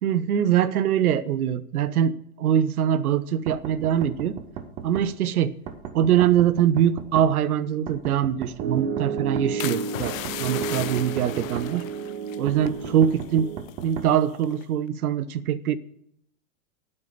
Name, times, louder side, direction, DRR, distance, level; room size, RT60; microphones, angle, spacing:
voice 1, 0.0-4.4 4.8-5.5 5.9-11.8 12.4-13.5 13.8-15.8, right 9 dB, 80° right, 17 dB, 0.9 m, -23 dB
sound 1, 3.5-5.1 5.7-7.3 7.9-9.5 10.1-11.7 12.5-14.1, right 8 dB, 15° right, 0.3 m, -36 dB
Piano, 8.6-13.6, right 6 dB, 40° right, 2.3 m, -32 dB
sound 2, 9.6-13.3 13.6-14.0 14.4-14.7, left 14 dB, 65° left, 0.8 m, -36 dB
8.8 x 8.2 x 7.2 m, 0.71 s
hypercardioid pair, 125°, 44 cm